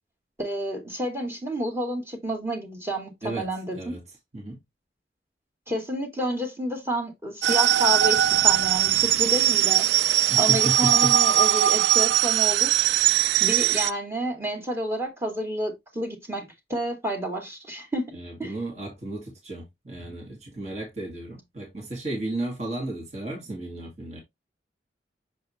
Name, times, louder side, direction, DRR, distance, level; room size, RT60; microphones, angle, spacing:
voice 1, 0.4-4.0 5.7-9.9 10.4-12.9 13.4-18.5, right 1 dB, 15° right, 2.0 m, -30 dB
voice 2, 3.2-4.0 4.3-4.6 10.3-11.2 18.1-24.2, right 2 dB, 40° right, 2.1 m, -34 dB
sound 1, 7.4-13.9, right 12 dB, 80° right, 0.4 m, -20 dB
6.6 x 4.8 x 3.1 m
head